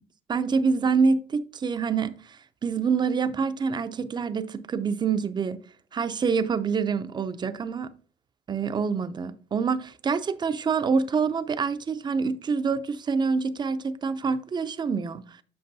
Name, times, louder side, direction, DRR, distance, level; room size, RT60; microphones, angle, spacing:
voice 1, 0.3-5.6 5.9-7.9 8.5-15.2, right 5 dB, 25° right, 0.4 m, -26 dB
7.8 x 6.0 x 2.6 m
cardioid pair, 110°, 17 cm